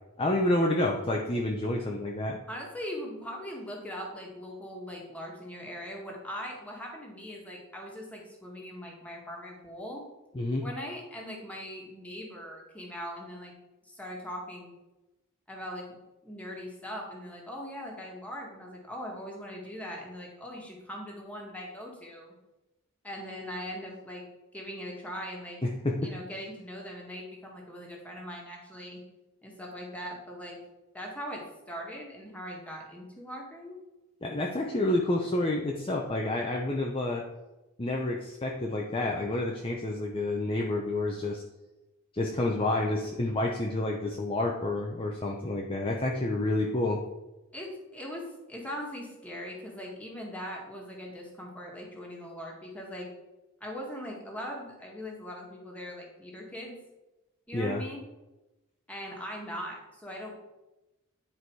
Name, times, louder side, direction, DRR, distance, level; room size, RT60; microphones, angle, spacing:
voice 1, 0.2-2.4 10.3-10.6 25.8-25.9 34.2-37.2 37.8-41.4 42.1-47.0 57.5-57.8, left 1 dB, 25° left, -1 dB, 0.8 m, -29 dB
voice 2, 2.5-10.0 10.6-13.5 13.8-14.7 15.5-15.8 16.2-22.3 23.0-24.2 24.5-25.6 26.0-29.0 29.4-30.6 30.9-33.8 47.5-53.1 53.6-56.8 57.5-58.0 58.9-60.3, equal, 5° left, -2 dB, 2.0 m, -40 dB
10.0 x 5.0 x 4.7 m, 1.0 s
head